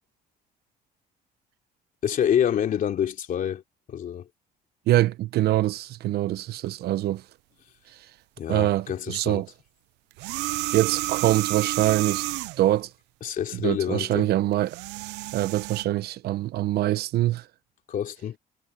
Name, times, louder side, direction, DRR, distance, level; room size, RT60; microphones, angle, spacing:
voice 1, 2.0-3.6 3.9-4.2 8.4-9.4 13.2-14.3 17.9-18.4, left 9 dB, 55° left, 3.0 m, -27 dB
voice 2, 4.9-7.2 8.5-9.5 10.7-12.2 12.6-12.9 13.5-14.8 15.3-17.4, right 14 dB, 70° right, 0.9 m, -24 dB
sound 1, 10.1-12.7 14.5-15.8, right 22 dB, 90° right, 0.4 m, -30 dB
cardioid pair, 110°, 17 cm